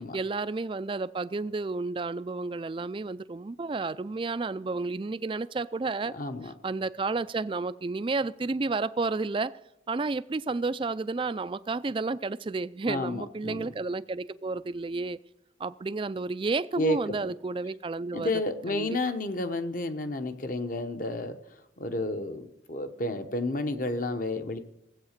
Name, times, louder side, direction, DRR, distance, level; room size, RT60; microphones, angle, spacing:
voice 1, 0.1-6.1 6.6-9.6 9.9-15.2 15.6-18.3 18.7-18.9, right 3 dB, 30° right, 0.4 m, -31 dB
voice 2, 6.1-6.5 12.9-13.7 16.8-17.3 18.1-21.4 21.8-24.6, left 2 dB, 45° left, 1.0 m, -31 dB
16.5 x 8.2 x 6.6 m
head